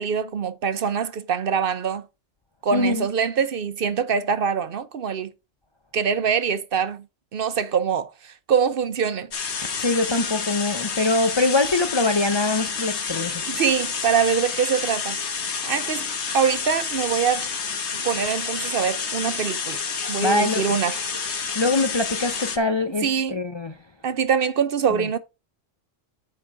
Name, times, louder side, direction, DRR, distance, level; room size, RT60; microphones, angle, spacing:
voice 1, 0.0-2.0 2.6-5.3 5.9-7.0 7.3-9.3 13.5-15.2 15.6-16.1 16.3-17.5 17.9-19.8 20.1-21.0 23.0-23.4 24.0-25.2, right 7 dB, 55° right, 0.8 m, -24 dB
voice 2, 2.7-3.1 9.6-13.4 20.2-20.8 21.5-23.8 24.9-25.1, left 2 dB, 35° left, 0.4 m, -23 dB
sound 1, 9.3-22.6, left 5 dB, 60° left, 1.4 m, -29 dB
9.6 x 5.3 x 4.6 m
omnidirectional pair, 1.3 m